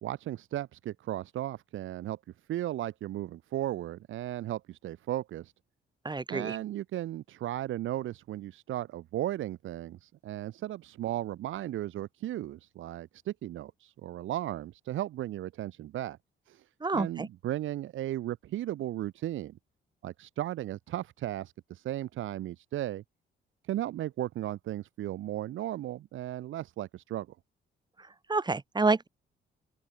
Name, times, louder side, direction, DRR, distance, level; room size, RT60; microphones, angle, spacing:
voice 1, 0.0-2.2 2.5-5.5 6.3-16.2 16.5-19.6 20.0-23.0 23.6-27.4, right 13 dB, 80° right, 2.3 m, -35 dB
voice 2, 6.0-6.6 16.8-17.3 28.3-29.1, right 3 dB, 20° right, 2.2 m, -28 dB
open air
cardioid pair, 90°, 20 cm